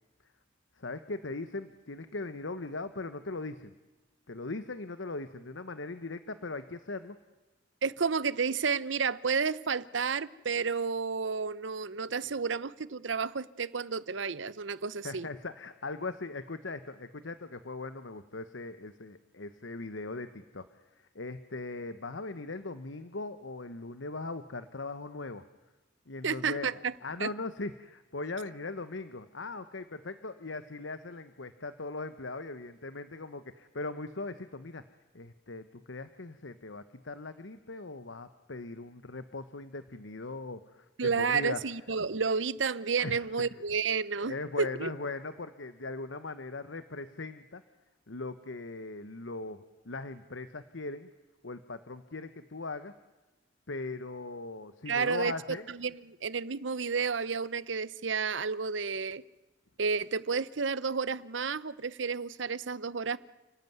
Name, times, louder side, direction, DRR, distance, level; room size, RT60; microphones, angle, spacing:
voice 1, 0.8-3.8 4.3-7.2 15.0-20.7 20.9-25.5 26.1-34.8 35.1-41.6 43.0-43.3 44.2-47.6 48.1-51.1 51.4-52.9 53.7-55.7, left 3 dB, 85° left, 11 dB, 1.2 m, -39 dB
voice 2, 7.8-15.3 26.2-26.9 27.2-27.3 41.0-44.9 54.9-55.3 55.8-59.2 59.8-63.2, right 5 dB, 80° right, 18 dB, 0.9 m, -31 dB
30.0 x 18.0 x 9.4 m, 1.1 s
head